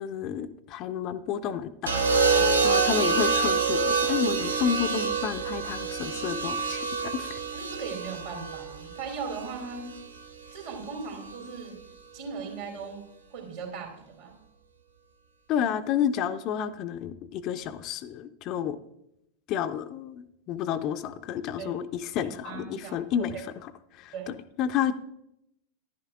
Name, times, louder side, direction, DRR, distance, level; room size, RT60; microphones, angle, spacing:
voice 1, 0.0-1.9 2.2-2.3 2.6-7.4 15.5-18.8 19.5-24.9, left 9 dB, 40° left, 11 dB, 0.4 m, -30 dB
sound 1, 1.9-10.0 11.2-11.6, right 4 dB, 75° right, 0.8 m, -27 dB
voice 2, 2.3-2.8 7.5-9.9 10.5-11.8 12.1-13.0 13.3-14.3 21.6-21.7 22.2-23.0 23.3-23.4 24.1-24.3, right 5 dB, 50° right, 3 dB, 2.3 m, -38 dB
10.5 x 9.5 x 2.5 m, 0.81 s
figure-of-eight pair, 90°, 0 cm